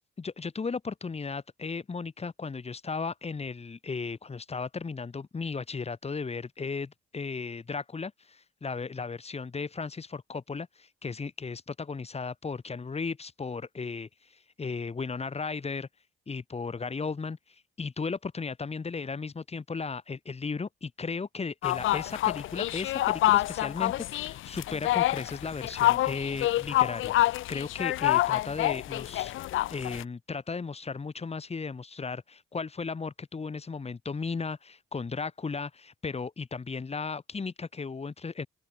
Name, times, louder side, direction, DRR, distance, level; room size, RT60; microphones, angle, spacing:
voice 1, 0.2-15.9 16.3-38.5, left 4 dB, 30° left, 5.9 m, -36 dB
sound 1, 21.6-30.0, left 15 dB, 80° left, 1.0 m, -27 dB
open air
cardioid pair, 90°, 20 cm